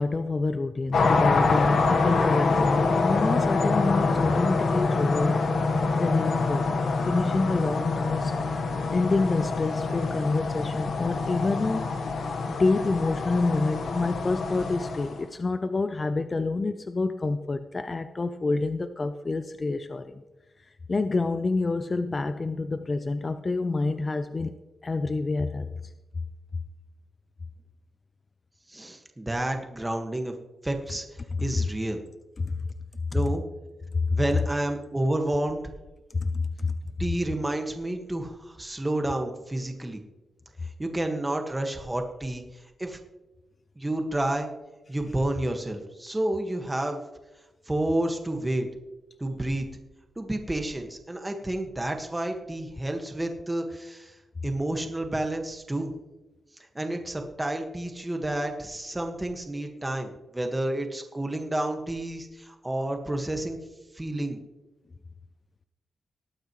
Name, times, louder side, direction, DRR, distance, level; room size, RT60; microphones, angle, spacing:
voice 1, 0.0-5.4 5.9-8.3 8.9-11.9 12.5-20.2 20.9-24.6 24.8-25.7 32.4-32.5 34.1-34.2 36.1-36.7, left 3 dB, 35° left, 10 dB, 0.5 m, -27 dB
sound 1, 0.9-15.2, left 3 dB, 75° left, 1.3 m, -26 dB
voice 2, 28.7-30.3 30.6-31.0 31.4-32.0 33.1-33.4 34.1-35.6 37.0-40.0 40.6-43.0 43.8-44.5 44.9-47.1 47.7-48.7 49.2-49.7 50.1-54.2 54.4-55.9 56.7-63.6 63.9-64.4, right 1 dB, 15° right, 4 dB, 1.6 m, -30 dB
20.0 x 8.9 x 3.1 m, 1.1 s
cardioid pair, 95°, 0 cm